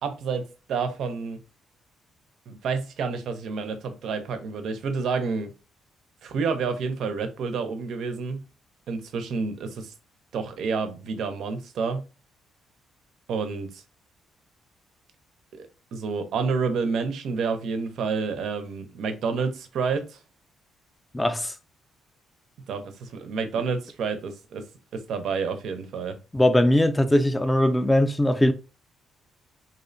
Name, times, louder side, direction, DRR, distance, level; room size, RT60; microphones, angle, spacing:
voice 1, 0.0-1.4 2.5-5.5 6.2-8.4 8.9-9.9 10.3-12.0 13.3-13.7 15.5-20.2 22.7-24.6 24.9-26.2, right 5 dB, 70° right, 0.4 m, -29 dB
voice 2, 21.1-21.5 26.3-28.5, left 1 dB, 15° left, 0.3 m, -20 dB
2.6 x 2.0 x 2.5 m
cardioid pair, 90°, 0 cm